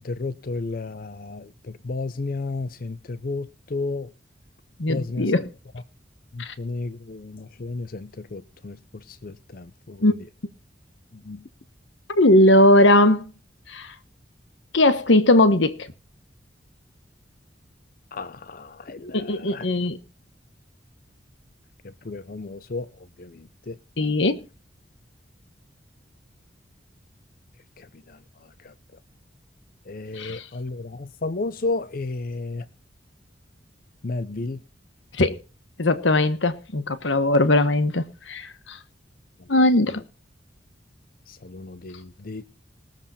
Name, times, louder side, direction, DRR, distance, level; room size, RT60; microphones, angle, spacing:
voice 1, 0.0-4.1 4.9-5.4 5.7-5.8 6.3-10.3 11.1-11.4 18.1-19.7 21.8-23.8 27.8-28.7 29.9-32.7 34.0-34.6 39.4-40.0 41.3-42.4, left 3 dB, 50° left, 0.6 m, -33 dB
voice 2, 4.8-5.5 6.4-6.5 10.0-10.1 12.1-13.2 13.7-13.9 14.7-15.9 19.1-20.0 24.0-24.4 30.2-30.4 35.2-35.4 35.8-38.8 39.5-40.0, left 1 dB, 85° left, 1.2 m, -19 dB
20.5 x 7.4 x 4.2 m
head